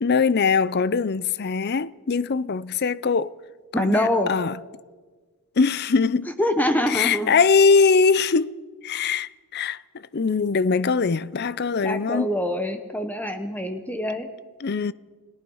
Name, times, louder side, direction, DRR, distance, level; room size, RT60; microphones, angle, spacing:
voice 1, 0.0-3.3 3.7-4.6 5.6-6.3 6.9-8.5 8.8-12.3 14.6-14.9, left 5 dB, 50° left, 0.5 m, -22 dB
voice 2, 3.7-4.3 6.4-7.3 11.8-14.3, left 1 dB, 10° left, 1.0 m, -24 dB
30.0 x 18.5 x 5.5 m
head